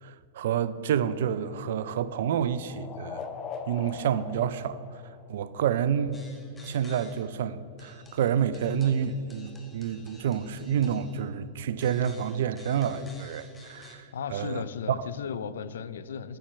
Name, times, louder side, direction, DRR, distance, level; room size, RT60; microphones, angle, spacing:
voice 1, 0.0-3.3 3.7-4.8 5.3-6.2 6.6-14.0 14.3-14.6, right 8 dB, 70° right, 0.4 m, -28 dB
sound 1, 1.0-5.7, left 6 dB, 35° left, 0.7 m, -42 dB
sound 2, 6.1-7.3 7.8-11.3 11.8-14.0, left 2 dB, 15° left, 1.4 m, -53 dB
voice 2, 14.1-16.4, left 7 dB, 80° left, 0.4 m, -35 dB
8.8 x 4.4 x 6.0 m
hypercardioid pair, 110°, 0 cm